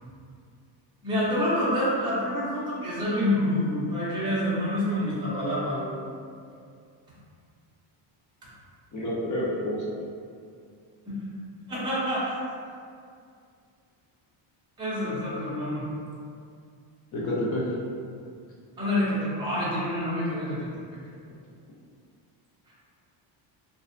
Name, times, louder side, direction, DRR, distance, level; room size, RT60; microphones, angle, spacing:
voice 1, 1.0-6.2 11.1-11.4 11.7-12.4 14.8-15.8 18.8-20.7, left 1 dB, 10° right, -10 dB, 0.5 m, -27 dB
voice 2, 8.9-9.8 17.1-17.6, left 1 dB, 40° left, -5 dB, 0.5 m, -28 dB
2.5 x 2.2 x 2.5 m, 2.3 s
cardioid pair, 160°, 48 cm